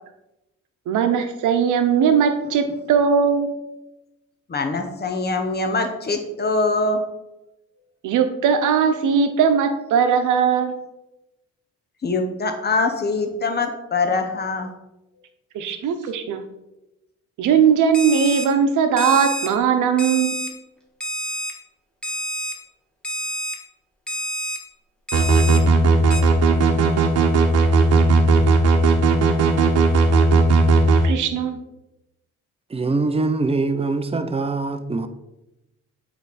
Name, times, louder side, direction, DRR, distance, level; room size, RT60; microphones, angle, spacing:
voice 1, 0.9-3.5 8.0-10.7 15.5-16.4 17.4-20.4 31.0-31.6, right 7 dB, 80° right, 0.9 m, -19 dB
voice 2, 4.5-7.0 12.0-14.7, left 3 dB, 35° left, 1.0 m, -23 dB
Alarm, 17.9-18.5 19.0-19.5 20.0-20.5 21.0-21.5 22.0-22.5 23.0-23.5 24.1-24.6 25.1-25.6 26.1-26.2, equal, 5° left, 1.4 m, -28 dB
sound 1, 25.1-31.0, right 3 dB, 55° right, 1.1 m, -16 dB
voice 3, 32.7-35.1, right 3 dB, 20° right, 0.6 m, -23 dB
8.1 x 3.4 x 4.2 m
cardioid pair, 90°, 30 cm